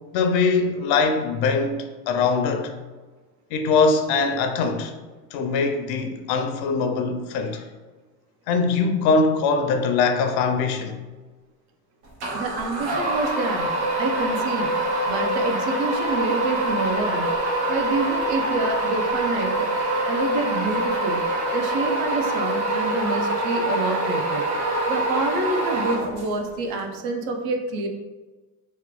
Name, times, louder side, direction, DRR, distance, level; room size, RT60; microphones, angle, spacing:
voice 1, 0.1-2.7 3.5-4.9 5.3-7.6 8.5-11.0, left 4 dB, 70° left, 0.6 m, -22 dB
sound 1, 12.2-26.5, right 1 dB, 85° right, 1.1 m, -25 dB
voice 2, 12.3-14.8 15.1-17.3 17.7-19.7 20.1-21.2 21.5-24.4 24.9-27.9, right 2 dB, 65° right, 0.7 m, -27 dB
3.1 x 2.3 x 3.7 m
supercardioid pair, 95°, 40 cm